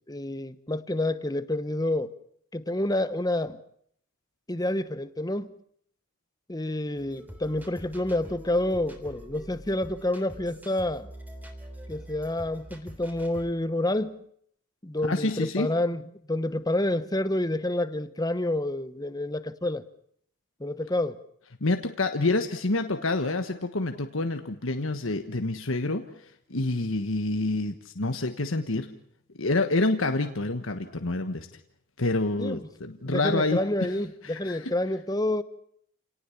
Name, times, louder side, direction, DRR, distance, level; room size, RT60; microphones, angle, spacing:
voice 1, 0.1-2.1 2.5-3.6 4.5-5.5 6.5-11.1 11.9-14.2 14.8-16.0 16.3-19.9 20.6-21.2 32.4-32.6 33.0-35.4, left 1 dB, 15° left, 1.0 m, -28 dB
sound 1, 7.0-13.5, right 1 dB, 10° right, 3.3 m, -45 dB
voice 2, 15.0-15.7 21.6-26.1 26.5-28.9 29.4-31.5 32.0-33.6 34.2-34.7, left 2 dB, 70° left, 1.4 m, -27 dB
29.0 x 18.5 x 7.2 m
head